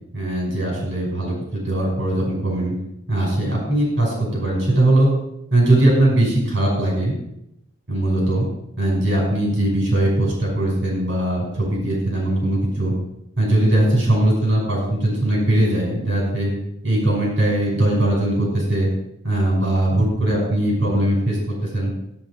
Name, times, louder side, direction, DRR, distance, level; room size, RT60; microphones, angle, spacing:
voice 1, 0.1-2.8 3.1-5.1 5.5-7.2 7.9-8.5 8.8-12.9 13.4-16.5 16.8-18.9 19.2-21.9, right 1 dB, 70° right, -2 dB, 5.7 m, -20 dB
15.5 x 8.6 x 5.0 m, 0.80 s
head